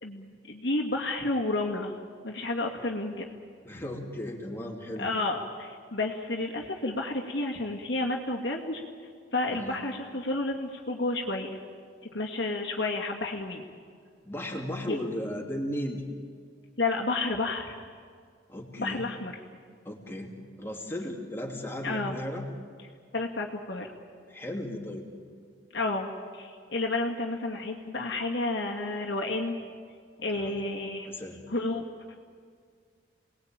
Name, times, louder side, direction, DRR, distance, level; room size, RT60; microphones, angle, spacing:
voice 1, 0.0-2.0 2.2-3.4 5.0-8.8 9.3-11.6 12.1-13.6 14.9-15.0 16.8-17.8 18.8-19.3 21.8-22.2 23.1-23.9 25.7-26.1 26.3-29.6 30.2-31.1 31.5-31.8, left 2 dB, 60° left, 0 dB, 2.3 m, -31 dB
voice 2, 3.6-5.1 9.5-9.8 14.2-16.0 18.5-19.0 19.8-22.4 24.3-25.1 30.3-30.6 31.0-31.4, left 1 dB, 10° left, 0 dB, 3.0 m, -36 dB
28.5 x 20.0 x 9.1 m, 2.1 s
head